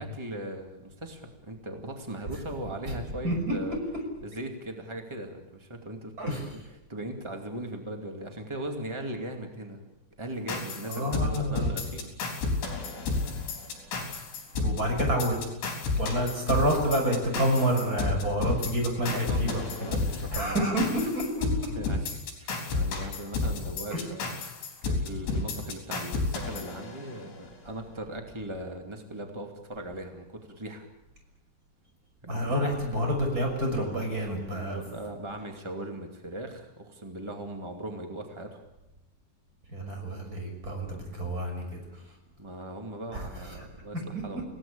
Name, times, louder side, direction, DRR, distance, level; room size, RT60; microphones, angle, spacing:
voice 1, 0.0-3.8 4.2-6.3 6.6-9.9 10.2-12.2 19.1-20.6 21.7-24.5 24.8-30.9 32.2-32.7 34.5-38.6 40.9-41.0 42.4-44.4, right 1 dB, 45° right, 3 dB, 0.3 m, -39 dB
sound 1, 10.5-27.4, left 3 dB, 70° left, 6.3 m, -31 dB
voice 2, 10.9-11.7 14.5-15.4 16.0-20.0 20.3-21.7 23.9-24.0 32.3-34.8 39.7-41.8 43.1-43.2, equal, 20° right, 2 dB, 6.3 m, -28 dB
29.0 x 17.5 x 8.7 m, 0.94 s
omnidirectional pair, 5.4 m